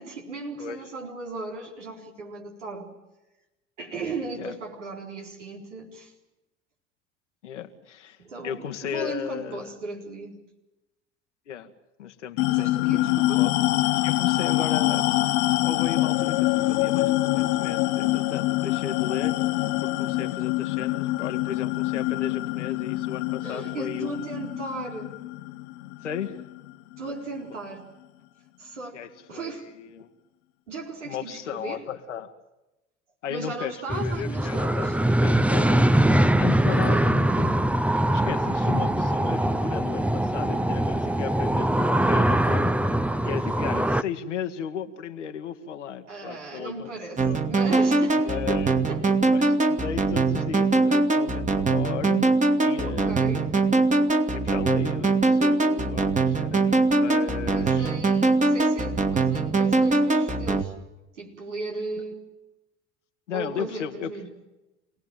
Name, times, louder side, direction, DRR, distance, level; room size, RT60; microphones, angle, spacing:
voice 1, 0.0-2.9 3.8-6.1 8.2-10.4 12.5-13.4 23.4-25.2 27.0-27.8 28.6-29.7 30.7-31.8 33.3-35.0 36.7-37.1 46.1-49.2 52.9-53.4 57.5-60.7 61.1-62.2 63.3-64.3, right 3 dB, 85° right, 0 dB, 4.3 m, -36 dB
voice 2, 7.4-9.7 11.5-11.7 12.0-12.9 13.3-13.6 13.8-19.4 19.8-24.3 26.0-26.4 28.9-30.1 31.0-32.3 33.2-35.9 36.4-42.7 43.2-46.9 47.2-47.4 48.2-48.8 49.3-52.3 52.6-53.5 54.3-57.9 63.3-64.1, left 8 dB, 85° left, 6 dB, 1.8 m, -35 dB
sound 1, 12.4-27.2, left 17 dB, 65° left, 1.1 m, -25 dB
sound 2, 33.9-44.0, right 1 dB, 5° right, 0.9 m, -22 dB
sound 3, 47.2-60.6, right 3 dB, 20° right, 2.2 m, -22 dB
27.5 x 18.5 x 9.1 m, 1.0 s
hypercardioid pair, 65°, 35 cm